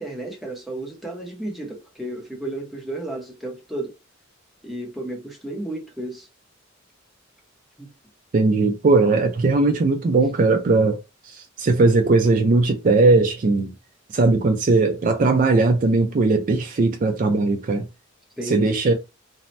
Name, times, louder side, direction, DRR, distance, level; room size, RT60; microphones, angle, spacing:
voice 1, 0.0-3.9 4.6-6.3 7.8-7.9 18.4-18.7, right 1 dB, ahead, 0.7 m, -33 dB
voice 2, 8.3-11.0 11.3-13.7 14.1-17.9 18.5-18.9, right 3 dB, 40° right, 0.3 m, -19 dB
2.7 x 2.0 x 3.1 m
head